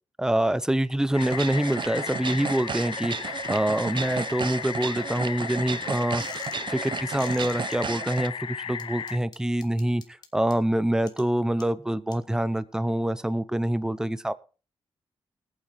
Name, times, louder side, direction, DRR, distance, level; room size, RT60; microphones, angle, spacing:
voice 1, 0.2-14.3, right 1 dB, 5° right, 14 dB, 0.6 m, -26 dB
sound 1, 1.1-9.2, left 7 dB, 60° left, 0.6 m, -35 dB
sound 2, 1.2-8.3, right 6 dB, 55° right, 0.7 m, -34 dB
sound 3, 6.2-6.6 7.1-7.8 8.8-10.5 11.1-11.2 11.6-11.7 12.1-12.2, left 4 dB, 45° left, 2.0 m, -45 dB
20.0 x 9.0 x 3.1 m, 0.36 s
cardioid pair, 80°, 10 cm